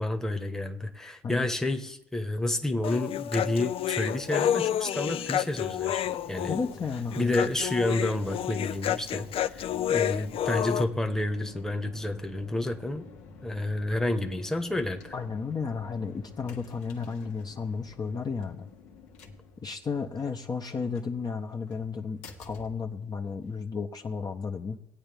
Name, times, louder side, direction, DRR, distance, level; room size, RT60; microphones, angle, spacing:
voice 1, 0.0-6.6 7.2-13.1 13.4-15.1, left 1 dB, 5° left, 1.2 m, -30 dB
Human voice, 2.8-10.8, left 11 dB, 50° left, 0.5 m, -29 dB
sound 1, 5.5-23.6, left 3 dB, 75° left, 1.5 m, -50 dB
voice 2, 6.5-7.5 15.1-18.7 19.6-24.8, left 5 dB, 35° left, 1.0 m, -33 dB
18.5 x 8.9 x 3.5 m
hypercardioid pair, 70°, 12 cm